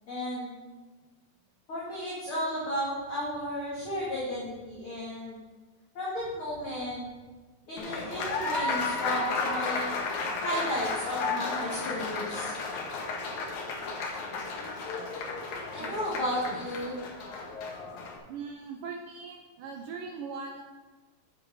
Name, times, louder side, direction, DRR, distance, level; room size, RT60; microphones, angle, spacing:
voice 1, 0.1-0.5 1.7-5.4 5.9-7.0 7.7-10.0 10.4-12.5 15.7-17.0, equal, 40° left, -7 dB, 2.6 m, -33 dB
Applause, 7.8-18.2, left 4 dB, 60° left, 2.3 m, -33 dB
voice 2, 15.8-16.2 17.1-17.2 18.3-20.6, right 5 dB, 80° right, 2 dB, 1.9 m, -40 dB
9.6 x 8.8 x 4.8 m, 1.3 s
omnidirectional pair, 4.6 m